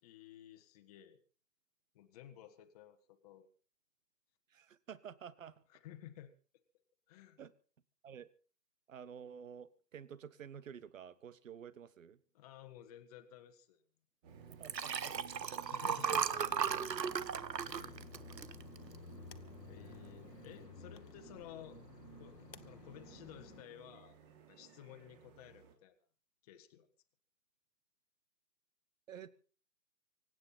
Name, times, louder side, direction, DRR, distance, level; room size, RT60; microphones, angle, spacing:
voice 1, 0.0-1.2 2.0-3.5 5.7-6.3 7.1-7.4 12.3-13.8 15.7-16.6 17.6-18.0 19.7-21.8 22.2-22.4 22.6-24.2 24.5-26.0 26.4-26.9, left 11 dB, 25° left, 6 dB, 1.6 m, -54 dB
voice 2, 4.5-5.5 7.4-7.5 8.0-8.3 8.9-12.2 14.5-15.2 19.8-20.2 29.1-29.3, right 8 dB, 50° right, 18 dB, 1.5 m, -51 dB
sound 1, 14.2-25.7, right 8 dB, 25° right, 3.3 m, -58 dB
Liquid, 14.5-19.2 19.6-19.9 20.2-20.3, right 7 dB, 80° right, 1.2 m, -36 dB
sound 2, 16.2-23.6, left 6 dB, 80° left, 1.8 m, -55 dB
24.5 x 9.6 x 5.7 m, 0.40 s
hypercardioid pair, 150°, 49 cm